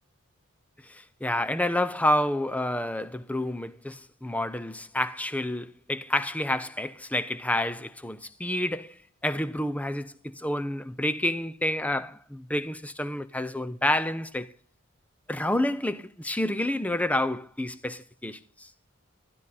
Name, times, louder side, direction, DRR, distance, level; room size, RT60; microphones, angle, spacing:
voice 1, 0.8-9.0 9.2-14.5 15.3-18.4, left 1 dB, 5° left, 0.6 m, -29 dB
12.5 x 12.0 x 4.1 m
head